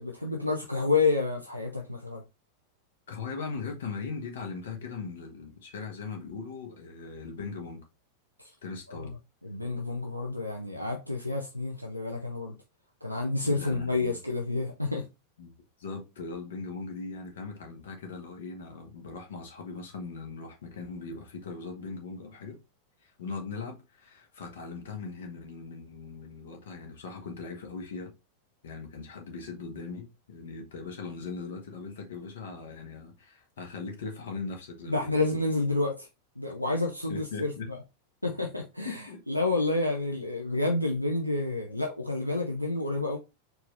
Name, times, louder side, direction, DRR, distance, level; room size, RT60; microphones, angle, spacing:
voice 1, 0.0-2.2 8.4-8.5 8.9-9.1 9.4-12.6 13.0-15.1 34.9-36.1 36.4-37.8 38.2-43.2, left 3 dB, 90° left, 0.5 m, -29 dB
voice 2, 3.1-7.8 8.6-9.1 13.4-14.2 15.4-15.5 15.8-22.6 23.0-28.1 28.6-35.2 37.1-37.7 38.8-39.2, left 4 dB, 60° left, 1.2 m, -39 dB
4.5 x 2.7 x 3.2 m
figure-of-eight pair, 90°, 0 cm